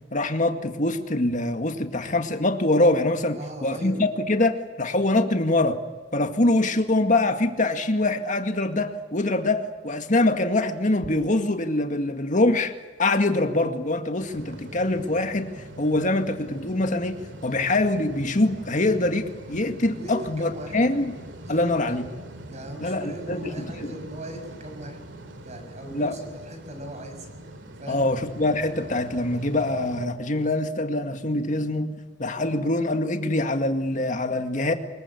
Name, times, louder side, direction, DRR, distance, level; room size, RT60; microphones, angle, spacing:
voice 1, 0.1-5.8 6.1-12.7 13.0-15.5 15.8-21.1 21.5-22.1 22.8-23.9 25.9-26.2 27.9-31.9 32.2-34.7, left 2 dB, 40° left, 6 dB, 2.1 m, -24 dB
voice 2, 3.3-4.0 19.9-20.8 21.4-21.8 22.5-25.0 25.4-27.3 27.8-28.1, right 1 dB, 40° right, 5 dB, 6.2 m, -39 dB
sound 1, 14.2-30.1, right 1 dB, 70° right, 2.6 m, -42 dB
24.5 x 22.0 x 8.5 m, 1.3 s
head